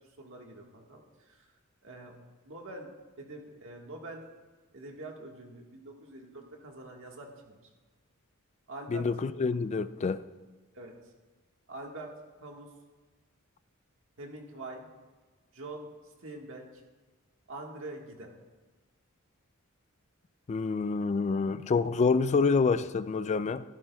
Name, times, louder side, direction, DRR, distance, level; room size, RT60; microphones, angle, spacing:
voice 1, 0.2-1.5 1.8-2.2 2.4-2.9 3.2-4.2 4.7-7.7 8.7-9.1 10.7-11.1 11.7-12.7 14.2-14.9 15.5-16.8 17.5-18.3, right 2 dB, 65° right, 1.6 m, -45 dB
voice 2, 8.9-10.2 20.5-23.6, left 4 dB, 30° left, 0.3 m, -27 dB
15.0 x 11.5 x 2.3 m
head